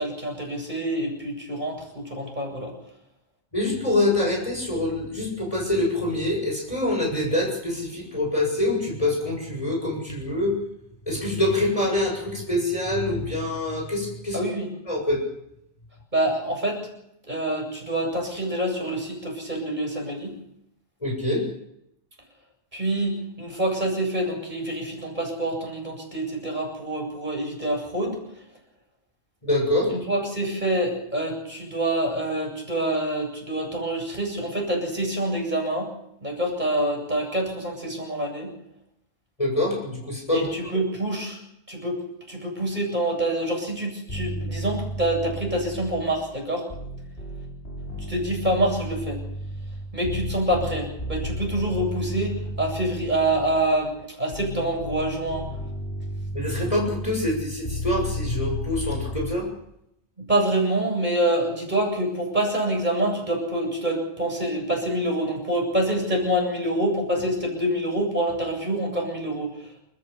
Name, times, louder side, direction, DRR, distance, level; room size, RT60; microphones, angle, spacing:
voice 1, 0.0-2.7 14.3-14.7 16.1-16.9 17.3-20.4 22.7-28.2 29.9-35.9 36.2-38.5 40.3-41.4 41.7-42.0 42.3-46.7 48.1-49.2 49.9-55.4 60.2-69.6, right 1 dB, 40° right, 0 dB, 8.3 m, -26 dB
voice 2, 3.5-10.6 11.1-14.4 14.9-15.2 21.0-21.5 29.4-29.9 39.4-40.5 56.3-59.5, left 1 dB, 30° left, 0 dB, 7.3 m, -25 dB
sound 1, 44.1-46.3 46.7-53.8 54.3-59.3, equal, 55° left, 6.2 m, -33 dB
29.5 x 14.5 x 7.3 m, 0.79 s
omnidirectional pair, 1.2 m